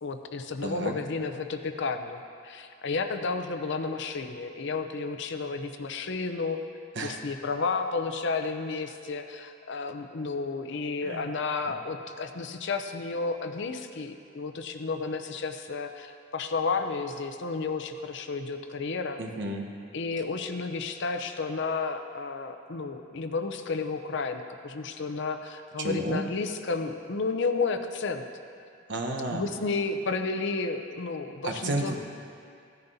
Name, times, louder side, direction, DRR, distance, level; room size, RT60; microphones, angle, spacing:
voice 1, 0.0-6.6 7.0-19.2 19.9-28.2 29.3-32.0, left 4 dB, 65° left, 7 dB, 0.6 m, -32 dB
voice 2, 0.6-1.0 6.9-7.2 11.0-11.3 11.7-11.8 19.2-19.7 25.8-26.2 28.9-29.5 31.4-32.0, right 2 dB, 65° right, 2 dB, 1.1 m, -32 dB
15.5 x 10.5 x 2.7 m, 2.4 s
head